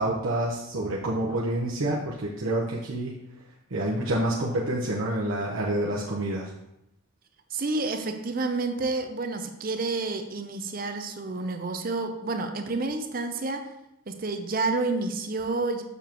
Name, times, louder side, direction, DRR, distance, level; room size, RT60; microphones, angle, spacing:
voice 1, 0.0-3.2 3.7-6.5, right 1 dB, 70° right, -5 dB, 0.9 m, -28 dB
voice 2, 7.5-13.7 14.1-15.8, right 3 dB, 40° right, 6 dB, 0.6 m, -29 dB
7.1 x 6.7 x 3.0 m, 0.84 s
head